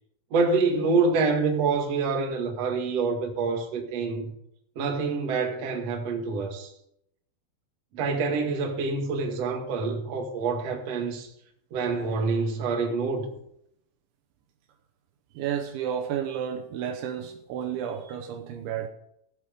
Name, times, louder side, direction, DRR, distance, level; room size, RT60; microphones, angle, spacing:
voice 1, 0.3-4.3 4.8-6.7 7.9-11.3 11.7-13.3, right 4 dB, 50° right, 2.0 m, -26 dB
voice 2, 15.3-18.9, right 9 dB, 75° right, 3.1 m, -31 dB
16.5 x 8.1 x 5.3 m
omnidirectional pair, 5.9 m